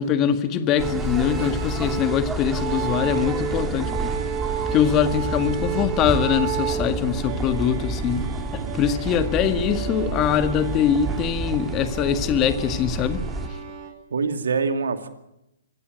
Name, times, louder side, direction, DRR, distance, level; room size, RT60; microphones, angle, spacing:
voice 1, 0.0-4.2 4.7-13.2, left 9 dB, 30° left, 1.8 m, -23 dB
sound 1, 0.8-13.5, right 3 dB, 10° right, 2.4 m, -30 dB
sound 2, 0.8-13.9, right 8 dB, 35° right, 4.9 m, -33 dB
voice 2, 14.1-15.1, right 4 dB, 70° right, 2.3 m, -25 dB
25.0 x 16.0 x 9.4 m
figure-of-eight pair, 120°, 0 cm